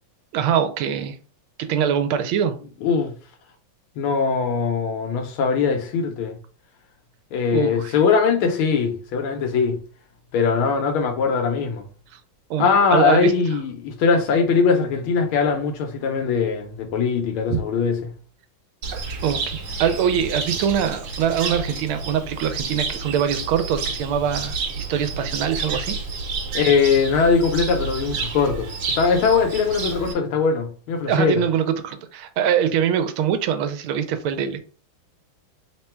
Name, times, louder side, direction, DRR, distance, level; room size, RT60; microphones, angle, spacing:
voice 1, 0.3-1.2 1.6-2.6 7.5-8.0 12.5-13.3 18.9-26.0 31.1-34.6, right 8 dB, 85° right, 1.5 m, -23 dB
voice 2, 2.8-3.1 4.0-6.4 7.3-9.8 10.3-11.9 12.6-18.1 26.5-28.7 29.0-31.4, left 5 dB, 85° left, 1.6 m, -21 dB
Cricket, 18.8-30.1, right 4 dB, 70° right, 1.5 m, -30 dB
3.8 x 2.2 x 4.3 m
omnidirectional pair, 2.3 m